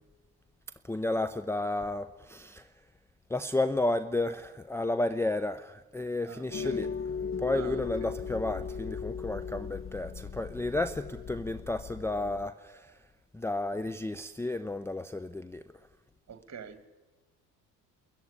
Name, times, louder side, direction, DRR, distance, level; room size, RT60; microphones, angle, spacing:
voice 1, 0.8-2.7 3.3-6.9 7.4-12.9 13.3-15.6, left 2 dB, 5° left, 0.7 m, -32 dB
voice 2, 6.3-6.9 7.5-8.2 16.3-16.9, right 7 dB, 35° right, 2.2 m, -45 dB
sound 1, 6.5-12.5, left 6 dB, 25° left, 1.2 m, -37 dB
28.0 x 14.5 x 9.8 m
figure-of-eight pair, 55°, 47 cm